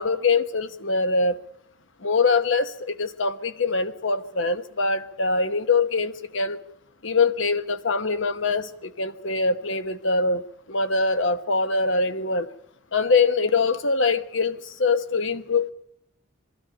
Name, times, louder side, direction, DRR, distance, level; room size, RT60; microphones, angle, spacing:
voice 1, 0.0-1.4 2.0-6.6 7.0-12.5 12.9-15.7, left 4 dB, 65° left, 1.1 m, -23 dB
23.5 x 13.0 x 9.9 m
head